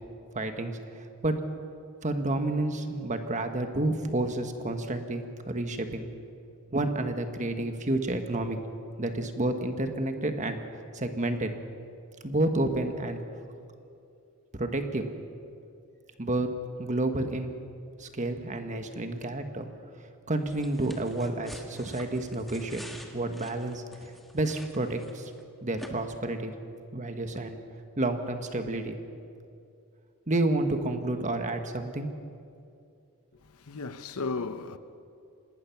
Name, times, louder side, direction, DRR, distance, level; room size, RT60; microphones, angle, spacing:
voice 1, 0.3-1.4 2.0-6.1 6.7-8.6 9.0-10.6 10.9-11.5 12.2-13.2 14.5-15.1 16.2-16.5 16.8-17.5 18.0-19.7 20.3-22.8 23.1-25.3 25.6-26.5 26.9-27.6 28.0-29.0 30.3-32.1, right 2 dB, 35° right, 1.5 m, -30 dB
sound 1, 20.5-25.4 25.8-25.9, equal, ahead, 1.6 m, -47 dB
voice 2, 33.4-34.8, left 4 dB, 90° left, 1.0 m, -35 dB
27.5 x 19.0 x 5.9 m
head